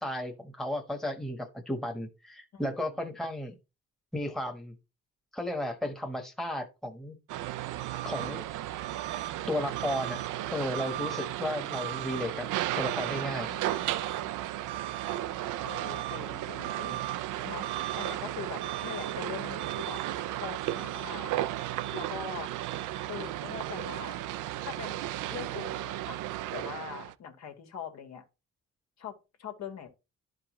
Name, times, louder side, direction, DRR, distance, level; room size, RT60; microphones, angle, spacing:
voice 1, 0.0-3.5 4.1-4.8 5.3-7.2 8.0-8.4 9.5-10.2 10.5-12.5 12.7-13.5, left 1 dB, ahead, 1.2 m, -34 dB
voice 2, 2.5-2.9 13.3-14.0 15.6-17.0 17.4-17.7 17.9-20.0 20.4-21.3 21.9-22.5 23.1-24.2 24.6-26.2 26.5-28.2 29.0-30.0, left 7 dB, 60° left, 1.7 m, -42 dB
sound 1, 7.3-27.1, right 14 dB, 85° right, 0.5 m, -34 dB
11.0 x 4.9 x 3.0 m
cardioid pair, 90°, 30 cm